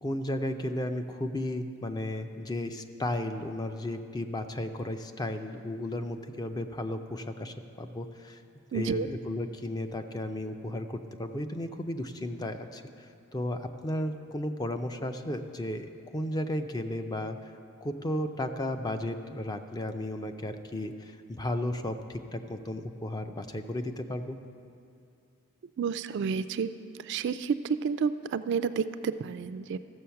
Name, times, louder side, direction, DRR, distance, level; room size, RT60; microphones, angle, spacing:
voice 1, 0.0-8.4 8.7-13.1 13.3-17.4 17.8-24.4, left 1 dB, 20° left, 7 dB, 0.4 m, -34 dB
voice 2, 8.7-9.1 25.8-26.7 27.1-29.8, right 6 dB, 55° right, 13 dB, 0.3 m, -30 dB
14.0 x 7.0 x 5.7 m, 2.5 s
head